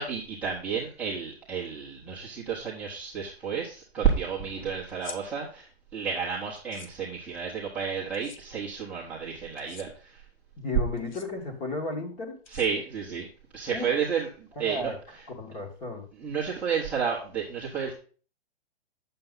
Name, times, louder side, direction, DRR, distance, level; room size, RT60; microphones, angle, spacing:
voice 1, 0.0-10.2 12.5-13.3 13.5-14.9 16.2-17.9, right 6 dB, 5° right, -8 dB, 0.9 m, -31 dB
sound 1, 4.9-5.2 6.6-6.9 8.1-8.4 9.6-9.9 11.0-11.3 12.5-13.1, left 5 dB, 45° left, 0.9 m, -45 dB
voice 2, 10.6-12.4 13.7-14.0 14.5-15.0 15.3-16.1, left 2 dB, 20° left, 1 dB, 1.6 m, -33 dB
8.6 x 6.8 x 3.8 m, 0.40 s
hypercardioid pair, 165°, 32 cm